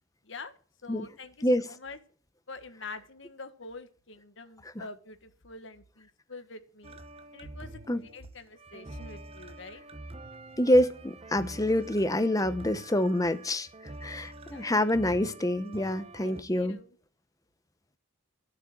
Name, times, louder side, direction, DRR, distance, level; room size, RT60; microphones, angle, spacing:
voice 1, 0.2-2.0 2.5-7.0 7.3-9.8 14.4-14.7 16.2-17.0, left 3 dB, 60° left, 1.5 m, -46 dB
sound 1, 6.8-16.4, right 2 dB, 30° right, 0.8 m, -46 dB
voice 2, 10.6-13.7 14.0-16.8, left 1 dB, 15° left, 0.9 m, -26 dB
12.5 x 7.6 x 7.8 m
head